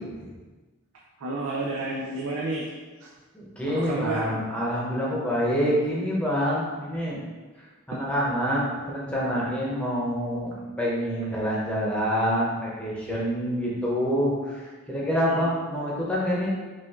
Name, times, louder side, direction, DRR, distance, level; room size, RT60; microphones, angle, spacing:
voice 1, 1.2-2.7 3.0-3.1 3.7-4.3 15.3-15.5, right 2 dB, 90° right, -3 dB, 0.6 m, -30 dB
voice 2, 3.3-7.2 7.6-16.5, equal, 5° left, -5 dB, 0.8 m, -27 dB
5.3 x 2.5 x 3.6 m, 1.3 s
head